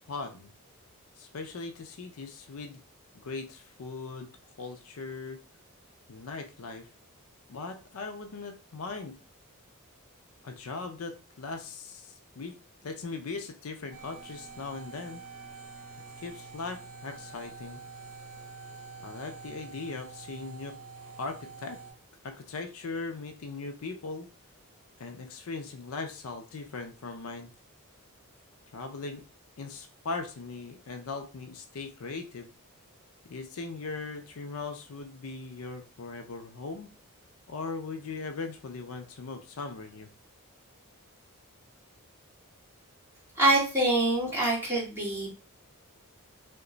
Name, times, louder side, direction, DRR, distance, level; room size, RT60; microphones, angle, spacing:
voice 1, 0.1-0.5 1.2-2.8 3.2-4.3 4.6-5.4 6.1-6.9 7.5-9.2 10.4-12.6 12.8-15.2 16.2-17.8 19.0-20.8 21.2-21.8 22.2-24.3 25.0-27.5 28.7-29.2 29.6-32.5 33.2-36.9 37.5-40.1, left 4 dB, 70° left, 6 dB, 0.5 m, -39 dB
sound 1, 13.9-21.9, right 4 dB, 60° right, 0.9 m, -46 dB
voice 2, 43.4-45.3, right 2 dB, 10° right, -7 dB, 1.7 m, -25 dB
2.9 x 2.2 x 3.8 m, 0.33 s
head